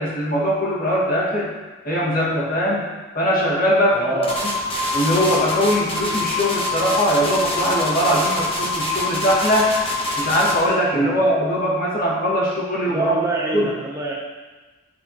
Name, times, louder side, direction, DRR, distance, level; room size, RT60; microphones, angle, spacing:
voice 1, 0.0-1.5 1.8-2.9 3.1-4.5 4.9-9.7 10.2-13.1 13.5-13.7, equal, 40° left, -6 dB, 1.8 m, -21 dB
voice 2, 3.9-4.4 10.9-11.2 12.9-14.1, right 2 dB, 15° right, -4 dB, 0.7 m, -25 dB
sound 1, 4.2-10.6, left 2 dB, 25° left, 0.9 m, -24 dB
10.0 x 4.7 x 2.9 m, 1.2 s
head